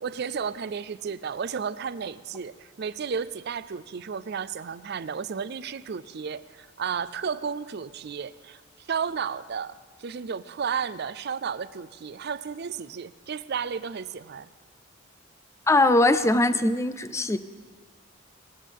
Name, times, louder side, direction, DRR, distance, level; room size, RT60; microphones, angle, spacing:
voice 1, 0.0-8.6 8.9-14.5, right 6 dB, 50° right, 15 dB, 0.4 m, -33 dB
voice 2, 15.7-17.4, left 2 dB, 15° left, 12 dB, 0.4 m, -21 dB
19.5 x 16.0 x 3.5 m, 1.5 s
head